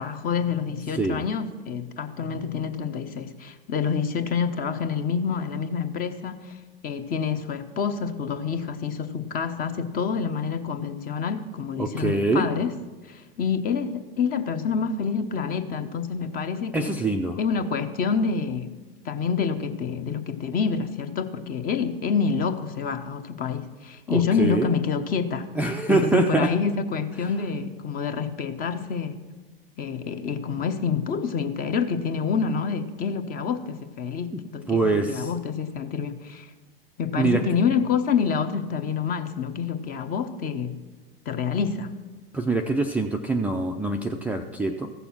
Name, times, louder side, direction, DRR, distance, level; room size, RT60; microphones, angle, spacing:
voice 1, 0.0-6.6 6.8-12.7 13.1-17.0 17.4-18.8 19.0-25.5 25.9-29.1 29.8-36.5 37.0-40.8 41.3-41.9, left 6 dB, 30° left, 10 dB, 0.9 m, -27 dB
voice 2, 11.8-12.5 16.7-17.4 24.1-24.7 25.6-26.5 34.3-34.4 34.7-35.3 37.2-37.4 42.3-44.9, right 3 dB, 5° right, 2 dB, 0.4 m, -24 dB
14.5 x 6.8 x 6.0 m, 1.3 s
hypercardioid pair, 100°, 30 cm